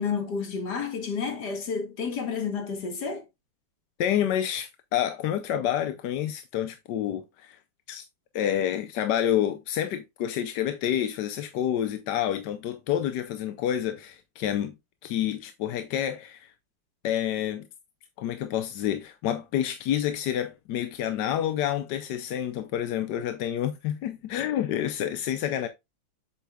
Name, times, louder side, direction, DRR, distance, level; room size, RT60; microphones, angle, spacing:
voice 1, 0.0-3.3, left 5 dB, 50° left, 2.1 m, -30 dB
voice 2, 4.0-7.6 7.9-8.0 8.3-14.7 15.0-16.5 17.0-17.7 18.2-25.7, left 10 dB, 70° left, 1.1 m, -28 dB
7.4 x 7.0 x 2.3 m
omnidirectional pair, 2.3 m